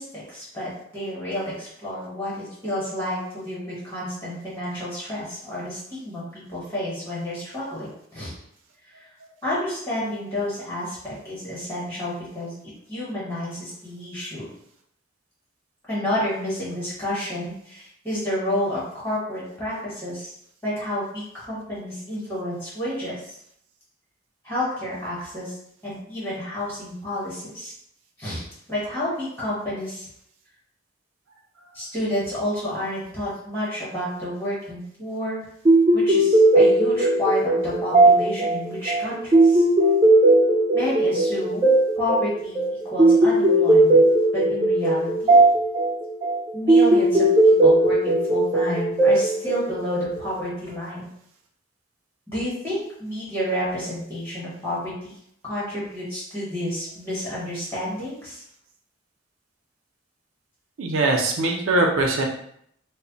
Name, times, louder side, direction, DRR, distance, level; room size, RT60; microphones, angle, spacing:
voice 1, 0.0-8.3 8.9-9.1 9.4-12.5 12.9-14.5 15.9-20.3 20.6-23.3 24.4-25.6 25.8-27.7 28.2-28.4 28.7-30.1 31.7-35.4 35.9-39.6 40.7-44.0 44.5-45.4 46.5-51.1 52.3-55.1 55.4-58.4, left 1 dB, 10° left, -8 dB, 0.9 m, -30 dB
sound 1, 35.7-50.4, right 2 dB, 25° right, 0.3 m, -18 dB
voice 2, 60.8-62.3, right 2 dB, 85° right, 1 dB, 0.5 m, -21 dB
2.1 x 2.1 x 3.8 m, 0.70 s
head